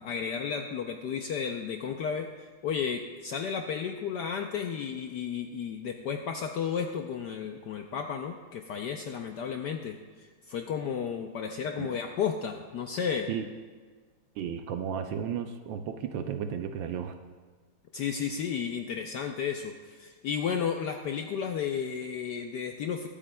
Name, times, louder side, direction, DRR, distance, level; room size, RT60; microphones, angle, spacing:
voice 1, 0.0-13.3 17.9-23.1, left 7 dB, 75° left, 4 dB, 1.0 m, -33 dB
voice 2, 14.4-17.1, right 8 dB, 75° right, 7 dB, 1.2 m, -33 dB
22.5 x 8.5 x 2.2 m, 1.5 s
omnidirectional pair, 2.4 m